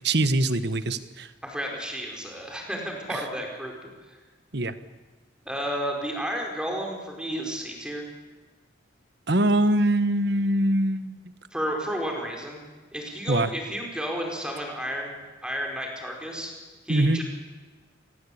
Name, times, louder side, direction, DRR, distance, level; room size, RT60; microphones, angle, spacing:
voice 1, 0.0-1.3 4.5-4.7 9.3-11.2 13.3-13.5 16.9-17.2, right 1 dB, 60° right, 12 dB, 1.3 m, -23 dB
voice 2, 1.4-4.2 5.4-8.1 11.5-12.6 12.9-16.5 16.8-17.2, equal, 5° right, 1 dB, 4.9 m, -32 dB
27.0 x 19.5 x 8.7 m, 1.3 s
head